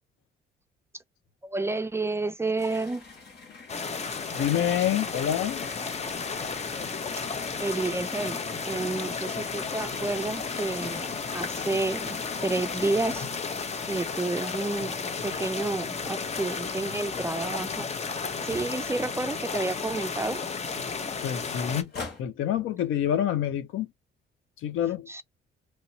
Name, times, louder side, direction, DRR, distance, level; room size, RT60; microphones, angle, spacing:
voice 1, 1.4-3.0 4.3-4.4 7.6-8.4 8.7-13.3 13.9-17.9 18.4-20.4 25.1-25.2, right 2 dB, 15° right, 0.4 m, -30 dB
sound 1, 2.6-15.4 15.8-19.2 19.5-19.6 19.8-22.2, left 4 dB, 55° left, 1.9 m, -45 dB
sound 2, 3.7-21.8, left 5 dB, 35° left, 0.7 m, -33 dB
voice 2, 4.3-5.7 21.2-21.9 22.2-23.9 24.6-25.1, left 10 dB, 85° left, 0.7 m, -27 dB
3.1 x 2.8 x 2.8 m
cardioid pair, 90°, 20 cm